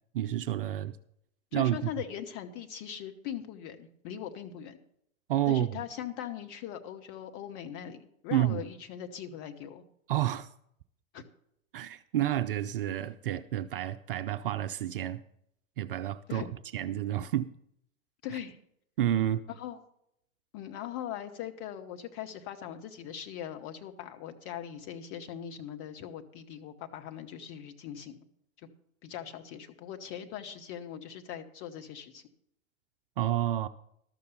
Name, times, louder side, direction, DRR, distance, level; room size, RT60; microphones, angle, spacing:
voice 1, 0.1-0.9 1.5-1.9 5.3-5.8 8.3-8.6 10.1-10.5 11.7-15.2 15.8-16.4 16.7-17.5 19.0-19.4 33.2-33.7, right 12 dB, 40° right, 0.5 m, -29 dB
voice 2, 1.5-4.8 5.5-9.8 11.1-11.2 16.3-16.5 18.2-18.6 19.5-19.8 20.5-28.2 28.6-28.7 29.0-32.2, left 10 dB, 30° left, 1.1 m, -40 dB
12.5 x 6.8 x 6.7 m
figure-of-eight pair, 105°, 42 cm